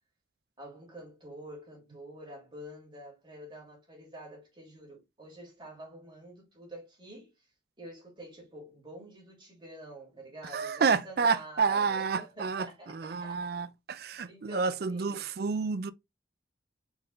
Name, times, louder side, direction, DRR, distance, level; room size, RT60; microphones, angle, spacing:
voice 1, 0.6-7.5 7.8-13.6 14.3-15.3, right 1 dB, 25° right, 2.3 m, -47 dB
voice 2, 10.5-15.9, right 5 dB, 50° right, 0.4 m, -29 dB
4.5 x 3.7 x 3.1 m
head